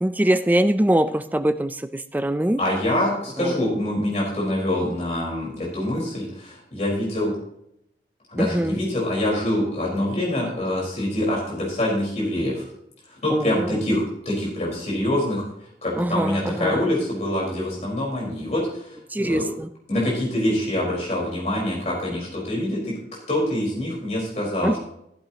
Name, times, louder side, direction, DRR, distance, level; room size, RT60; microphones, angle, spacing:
voice 1, 0.0-2.6 3.4-3.5 8.4-8.8 13.3-13.8 16.0-16.9 19.1-19.7 24.6-24.8, right 1 dB, 10° right, 11 dB, 0.4 m, -23 dB
voice 2, 2.6-7.3 8.3-12.7 13.1-15.4 15.8-19.4 19.9-22.9 23.3-24.8, left 1 dB, 40° left, -4 dB, 4.5 m, -25 dB
14.0 x 12.0 x 2.9 m, 0.76 s
head